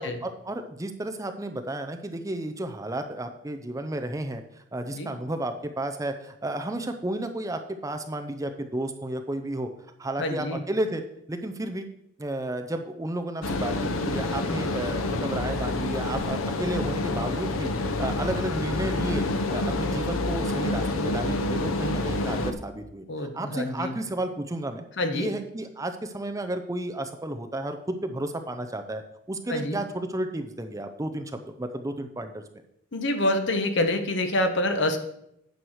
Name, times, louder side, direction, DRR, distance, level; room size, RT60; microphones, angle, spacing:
voice 1, 0.2-9.7 10.0-11.0 11.3-11.9 12.2-19.2 19.5-24.8 25.1-29.0 29.3-32.4, right 1 dB, 15° right, 7 dB, 0.6 m, -32 dB
voice 2, 10.2-10.6 23.1-24.0 25.0-25.3 29.5-29.8 32.9-35.0, left 1 dB, 60° left, 7 dB, 1.0 m, -26 dB
sound 1, 13.4-22.5, left 2 dB, 90° left, 0.8 m, -28 dB
9.3 x 4.6 x 6.4 m, 0.77 s
head